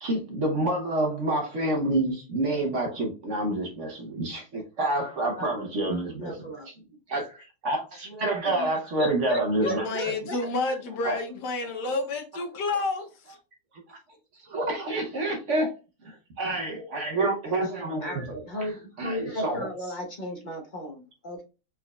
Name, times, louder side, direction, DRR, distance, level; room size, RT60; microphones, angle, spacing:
voice 1, 0.0-6.7 7.1-9.9 11.0-11.2 13.9-14.0 14.4-15.7 16.0-18.7 19.0-19.7, right 1 dB, 55° right, 1.0 m, -28 dB
voice 2, 5.8-6.7 8.4-8.7 9.0-10.8 18.0-21.4, right 1 dB, 30° left, 1.0 m, -34 dB
voice 3, 9.6-13.4, left 3 dB, 75° left, 1.5 m, -30 dB
4.4 x 4.1 x 2.3 m
omnidirectional pair, 1.8 m